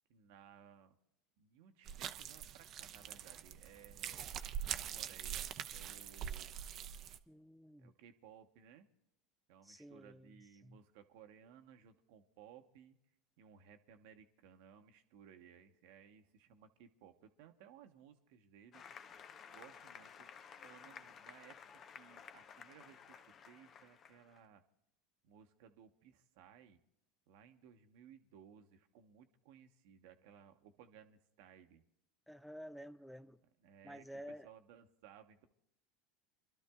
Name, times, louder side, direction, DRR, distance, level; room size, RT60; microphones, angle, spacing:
voice 1, 0.1-1.0 1.4-6.6 7.8-8.9 9.5-13.0 13.4-18.9 19.5-20.3 20.6-24.6 25.2-26.8 27.3-31.8 33.6-35.5, right 8 dB, 65° right, 1.0 m, -61 dB
sound 1, 1.9-7.2, right 9 dB, 45° right, 0.7 m, -44 dB
voice 2, 7.3-7.9 9.6-10.3 10.6-10.8 32.3-33.4 33.8-34.5, equal, ahead, 0.4 m, -51 dB
Applause, 18.7-24.4, left 7 dB, 40° left, 0.8 m, -55 dB
29.0 x 12.0 x 2.3 m
hypercardioid pair, 85°, 0 cm